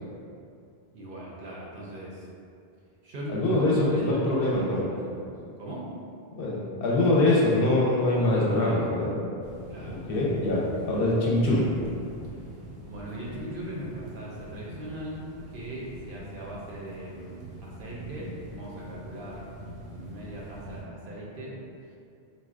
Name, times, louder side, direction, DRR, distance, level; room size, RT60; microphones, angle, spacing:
voice 1, 0.9-2.3 3.0-5.3 5.6-5.9 8.3-8.8 9.7-10.6 12.9-15.2 15.5-19.5 19.9-21.6, right 1 dB, 60° right, -5 dB, 0.7 m, -39 dB
voice 2, 3.3-4.8 6.3-9.2 9.9-11.7, left 2 dB, 65° left, -5 dB, 0.7 m, -24 dB
sound 1, 9.4-20.8, equal, 80° right, 0.9 m, -43 dB
3.9 x 2.1 x 2.4 m, 2.5 s
omnidirectional pair, 1.1 m